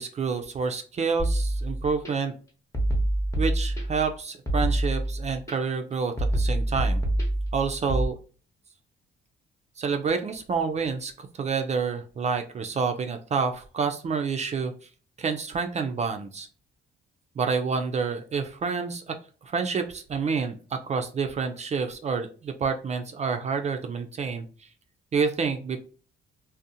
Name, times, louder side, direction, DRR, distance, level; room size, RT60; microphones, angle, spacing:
voice 1, 0.0-2.3 3.4-7.0 7.5-8.1 9.8-14.7 15.2-16.5 17.4-19.1 19.4-24.4 25.1-25.8, right 5 dB, 35° right, 6 dB, 0.3 m, -28 dB
sound 1, 1.2-2.1 2.7-4.1 4.5-5.5 6.2-8.1, right 1 dB, 15° left, 0.7 m, -26 dB
2.5 x 2.0 x 2.6 m, 0.39 s
cardioid pair, 90°, 20 cm